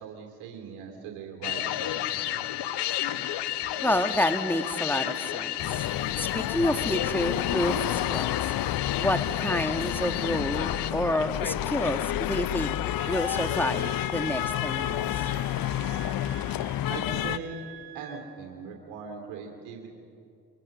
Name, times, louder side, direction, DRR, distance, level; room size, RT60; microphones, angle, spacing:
voice 1, 0.0-2.4 16.9-17.6 17.9-20.0, right 5 dB, 80° right, 2 dB, 2.7 m, -40 dB
sound 1, 1.4-10.9, left 13 dB, 75° left, 1.1 m, -32 dB
voice 2, 3.8-5.8 6.2-8.3 9.0-12.7 13.1-15.2, left 1 dB, 5° left, 7 dB, 1.9 m, -29 dB
sound 2, 5.6-17.4, left 13 dB, 60° left, 0.6 m, -30 dB
Wind instrument woodwind instrument, 13.0-18.3, right 8 dB, 65° right, 2.7 m, -46 dB
25.0 x 24.0 x 6.4 m, 2.6 s
hypercardioid pair, 50°, 40 cm